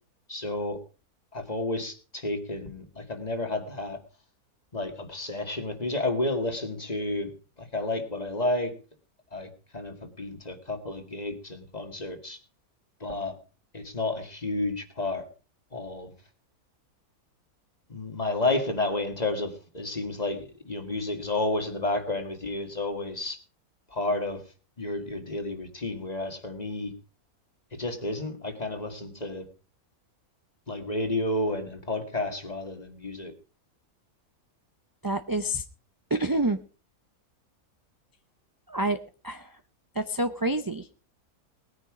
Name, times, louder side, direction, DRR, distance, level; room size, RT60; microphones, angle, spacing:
voice 1, 0.3-0.8 1.3-4.0 4.7-7.3 7.6-8.7 9.3-12.4 13.0-13.4 13.7-15.3 15.7-16.1 17.9-23.4 23.9-24.4 24.8-26.9 27.7-29.5 30.7-33.3, left 2 dB, 25° left, 6 dB, 2.0 m, -31 dB
voice 2, 35.0-35.6 36.1-36.6 38.7-39.0 39.2-39.6 39.9-40.9, right 1 dB, 25° right, 9 dB, 0.4 m, -27 dB
19.5 x 9.8 x 4.9 m, 0.36 s
omnidirectional pair, 1.6 m